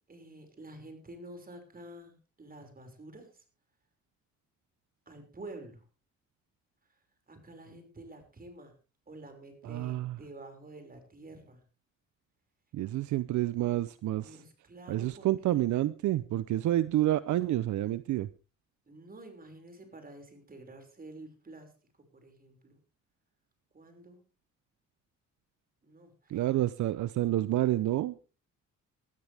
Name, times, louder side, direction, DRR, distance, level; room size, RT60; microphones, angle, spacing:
voice 1, 0.1-3.4 5.1-5.8 6.9-7.0 7.3-8.7 9.1-11.6 14.2-15.6 18.9-22.8 23.7-24.2 25.8-26.5, right 2 dB, 30° right, 6 dB, 5.6 m, -49 dB
voice 2, 9.6-10.2 12.7-14.4 14.9-18.3 26.3-28.2, right 14 dB, 70° right, 16 dB, 0.7 m, -29 dB
19.5 x 13.5 x 3.5 m, 0.35 s
cardioid pair, 90°, 30 cm